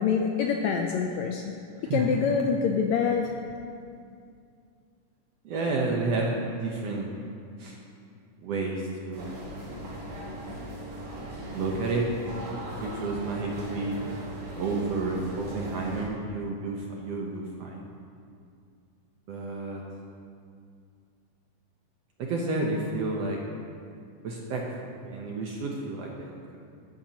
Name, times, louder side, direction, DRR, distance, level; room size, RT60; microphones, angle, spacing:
voice 1, 0.0-1.5 1.9-3.3, left 6 dB, 85° left, 2 dB, 1.6 m, -25 dB
voice 2, 1.8-2.2 5.4-7.1 7.6-7.8 8.4-9.4 11.5-12.1 12.8-14.0 14.6-17.9 19.3-19.8 22.2-23.4 24.2-26.6, right 3 dB, 70° right, -1 dB, 1.6 m, -31 dB
sound 1, 9.1-16.1, equal, 90° right, 4.5 m, -39 dB
13.0 x 12.0 x 2.9 m, 2.3 s
omnidirectional pair, 3.7 m